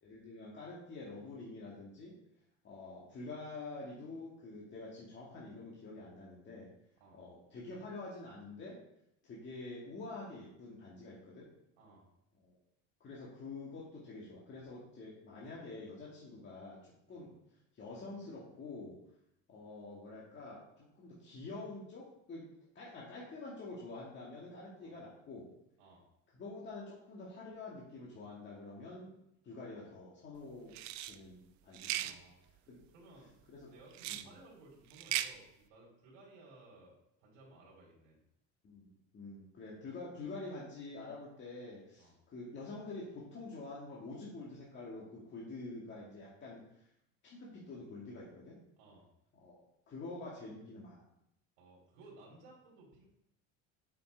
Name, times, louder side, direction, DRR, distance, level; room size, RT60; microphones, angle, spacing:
voice 1, 0.0-2.1 2.6-6.7 7.1-8.7 9.2-11.4 12.4-12.6 13.0-17.3 17.7-19.0 19.5-22.4 22.7-25.5 26.3-29.1 29.4-30.8 31.0-32.1 32.7-32.8 33.5-33.7 34.1-34.3 38.6-46.9 47.2-48.6 49.4-51.1, left 3 dB, 30° left, -5 dB, 1.8 m, -47 dB
voice 2, 11.8-12.1 17.1-17.2 24.8-25.0 25.8-26.0 31.9-32.4 32.9-33.4 33.7-38.2 42.0-42.1 48.8-49.0 51.6-53.1, right 2 dB, 80° right, -4 dB, 2.7 m, -58 dB
sound 1, 30.7-31.1 31.7-32.1 33.9-34.3 34.9-35.3, right 14 dB, 55° right, 0.5 m, -37 dB
7.7 x 5.8 x 3.9 m, 0.80 s
cardioid pair, 145°, 35 cm